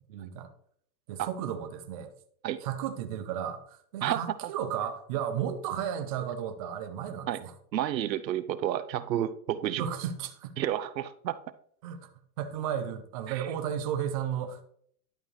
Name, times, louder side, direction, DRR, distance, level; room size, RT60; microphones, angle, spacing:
voice 1, 0.1-0.5 1.1-2.1 2.6-7.5 9.8-10.5 11.8-12.1 12.4-14.6, right 9 dB, 25° right, 0.5 m, -34 dB
voice 2, 7.7-9.8 10.6-11.4 13.3-13.5, right 11 dB, 90° right, 0.8 m, -30 dB
11.0 x 7.3 x 3.2 m
hypercardioid pair, 155°, 50 cm